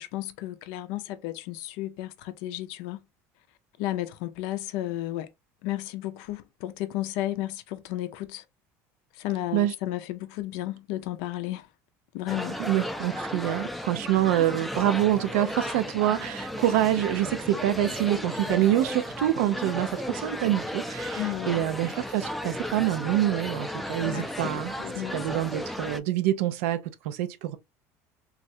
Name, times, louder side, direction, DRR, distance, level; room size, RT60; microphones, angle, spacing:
voice 1, 0.0-3.0 3.8-5.3 5.6-8.4 9.1-11.7 12.1-12.6 21.2-21.7 24.0-25.4, left 15 dB, 75° left, 0.4 m, -33 dB
sound 1, 12.3-26.0, left 1 dB, ahead, 0.4 m, -34 dB
voice 2, 12.7-24.7 25.1-27.6, right 13 dB, 85° right, 0.5 m, -26 dB
3.1 x 2.4 x 2.6 m
supercardioid pair, 100°, 7 cm